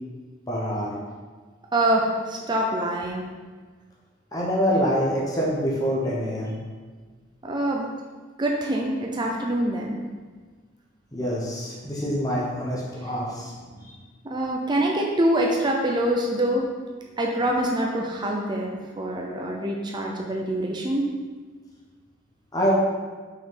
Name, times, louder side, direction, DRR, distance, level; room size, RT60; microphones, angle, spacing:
voice 1, 0.5-0.9 4.3-6.5 11.1-13.9 22.5-22.7, equal, 20° left, -5 dB, 1.0 m, -26 dB
voice 2, 1.7-3.2 7.4-7.9 8.4-10.0 14.2-16.7 17.2-21.1, right 1 dB, 25° right, -1 dB, 0.5 m, -25 dB
5.6 x 4.6 x 3.9 m, 1.4 s
head